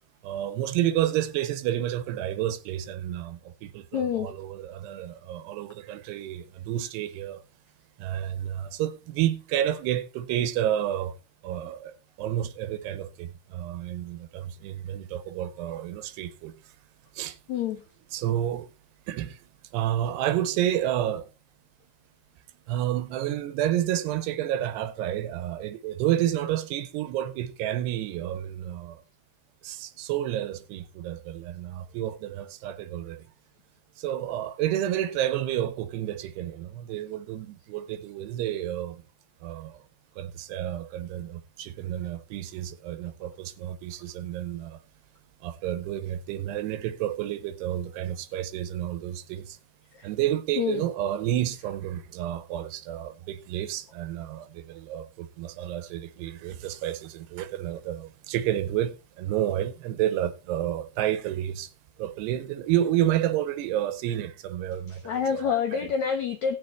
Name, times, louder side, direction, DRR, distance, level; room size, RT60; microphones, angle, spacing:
voice 1, 0.2-7.4 8.0-11.2 11.4-16.5 17.2-17.4 18.1-18.7 19.1-19.4 19.7-21.3 22.7-29.0 29.6-33.2 34.0-39.0 39.4-39.8 40.2-44.8 45.4-49.6 50.0-61.7 62.0-65.9, right 12 dB, 90° right, 2.9 m, -30 dB
voice 2, 3.9-4.3 17.5-17.8 49.9-50.1 50.6-50.8 65.0-66.6, left 7 dB, 85° left, 1.6 m, -27 dB
18.0 x 6.6 x 3.2 m
omnidirectional pair, 4.6 m